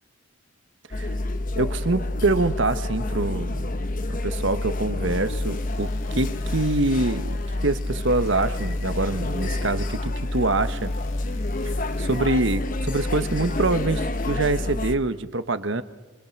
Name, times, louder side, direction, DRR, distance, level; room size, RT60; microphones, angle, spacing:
sound 1, 0.9-15.0, left 2 dB, 40° left, 1.0 m, -28 dB
voice 1, 1.5-3.7 4.2-10.9 11.6-11.7 12.0-15.8, right 2 dB, 60° right, 11 dB, 1.2 m, -25 dB
sound 2, 5.0-13.9, left 1 dB, 65° left, 1.7 m, -41 dB
25.0 x 25.0 x 6.0 m, 1.2 s
head